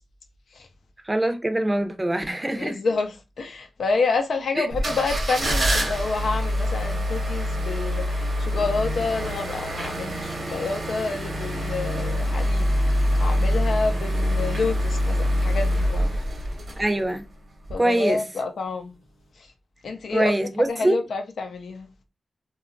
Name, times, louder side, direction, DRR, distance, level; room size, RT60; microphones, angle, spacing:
voice 1, 1.1-2.8 4.6-4.7 16.8-17.2 17.8-18.2 20.1-21.0, right 1 dB, 20° right, 0.5 m, -23 dB
voice 2, 2.6-16.2 17.7-19.0 19.4-19.5 19.8-20.3 20.7-21.9, left 4 dB, 80° left, 0.5 m, -28 dB
sound 1, 4.7-17.2 17.6-17.7, equal, 65° right, 0.9 m, -25 dB
2.8 x 2.3 x 2.4 m
cardioid pair, 55°, 0 cm